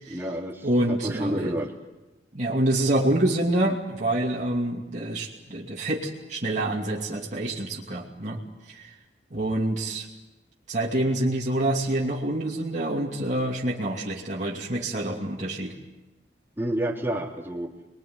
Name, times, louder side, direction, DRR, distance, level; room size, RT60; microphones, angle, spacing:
voice 1, 0.1-1.7 16.6-17.7, right 1 dB, 15° right, -2 dB, 3.3 m, -30 dB
voice 2, 0.6-1.5 2.3-8.4 8.7-8.9 9.3-10.1 10.7-15.7, right 1 dB, 40° right, -4 dB, 2.7 m, -27 dB
28.5 x 21.5 x 9.6 m, 1.1 s
head